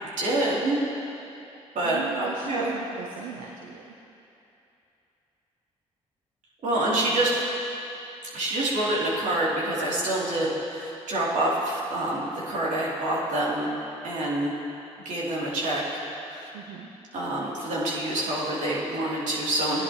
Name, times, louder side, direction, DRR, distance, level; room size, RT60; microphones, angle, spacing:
voice 1, 0.0-0.8 1.7-2.7 6.6-7.3 8.3-13.7 14.0-14.5 15.0-15.8 16.3-16.5 17.1-19.8, right 1 dB, 60° right, -6 dB, 3.1 m, -27 dB
voice 2, 1.8-3.9 7.0-7.2 10.4-10.6 16.5-16.9, right 7 dB, 80° right, 0 dB, 0.7 m, -39 dB
17.0 x 10.5 x 3.1 m, 2.8 s
hypercardioid pair, 45°, 14 cm